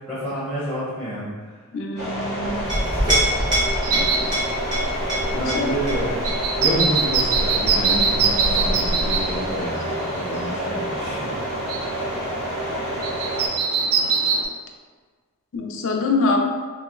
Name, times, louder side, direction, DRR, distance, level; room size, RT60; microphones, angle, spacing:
voice 1, 0.1-1.3 5.3-6.2 6.6-11.3, equal, 5° left, -9 dB, 0.7 m, -28 dB
voice 2, 1.7-2.6 3.9-4.3 5.3-5.7 6.0-6.1 15.5-16.4, left 3 dB, 55° left, 2 dB, 0.4 m, -25 dB
sound 1, 2.0-13.5, equal, 90° right, 1.3 m, -29 dB
Chink clink, 2.4-9.6, equal, 20° right, 1.0 m, -26 dB
sound 2, 3.8-14.4, right 5 dB, 65° right, 0.3 m, -25 dB
2.9 x 2.8 x 2.4 m, 1.5 s
head